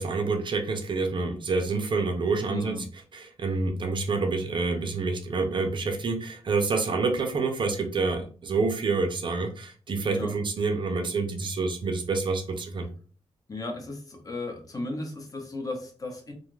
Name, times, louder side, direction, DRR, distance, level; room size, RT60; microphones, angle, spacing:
voice 1, 0.0-2.8 3.1-12.9, right 4 dB, 45° right, 5 dB, 0.5 m, -27 dB
voice 2, 2.5-2.8 10.1-10.3 13.5-16.3, left 2 dB, 35° left, 3 dB, 0.7 m, -35 dB
2.5 x 2.4 x 3.1 m, 0.41 s
wide cardioid pair, 120°, 11 cm